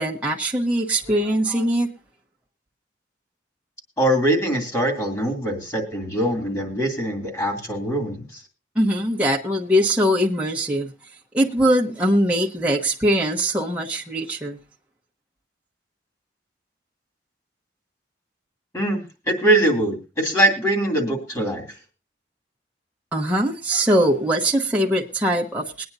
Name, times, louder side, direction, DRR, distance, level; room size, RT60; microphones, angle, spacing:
voice 1, 0.0-1.9 8.7-10.9 11.3-14.6 23.1-25.8, equal, 10° right, 1.1 m, -21 dB
voice 2, 4.0-8.4 18.7-21.7, right 1 dB, 20° left, 2.8 m, -22 dB
22.0 x 9.4 x 2.7 m
head